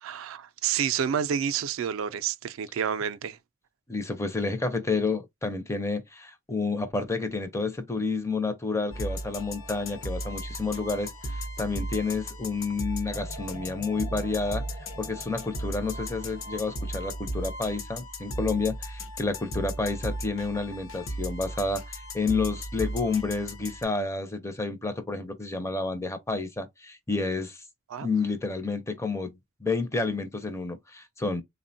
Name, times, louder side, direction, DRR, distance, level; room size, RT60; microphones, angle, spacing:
voice 1, 0.0-3.4 27.9-28.1, right 8 dB, 70° right, 0.3 m, -29 dB
voice 2, 3.9-27.6 28.0-31.4, left 3 dB, 15° left, 0.4 m, -30 dB
sound 1, 8.9-23.8, equal, 65° left, 0.7 m, -36 dB
sound 2, 9.1-12.1 13.1-17.4, left 1 dB, 90° left, 1.0 m, -49 dB
3.5 x 2.1 x 2.6 m
head